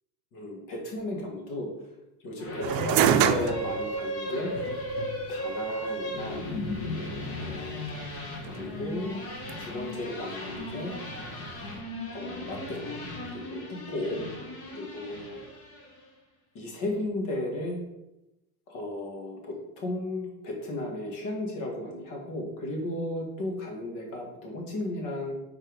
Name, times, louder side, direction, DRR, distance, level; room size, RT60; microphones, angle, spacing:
voice 1, 0.3-1.7 2.2-4.5 5.3-6.5 7.3-8.0 8.5-9.2 9.6-10.9 12.1-13.0 13.3-14.2 14.7-15.4 16.5-17.8 18.7-25.3, left 1 dB, 50° left, 1 dB, 2.0 m, -34 dB
sound 1, 2.4-16.0, left 1 dB, 35° left, 1.3 m, -36 dB
sound 2, 2.6-11.8, right 10 dB, 60° right, 0.6 m, -31 dB
4.5 x 4.2 x 5.2 m, 0.94 s
supercardioid pair, 140°, 39 cm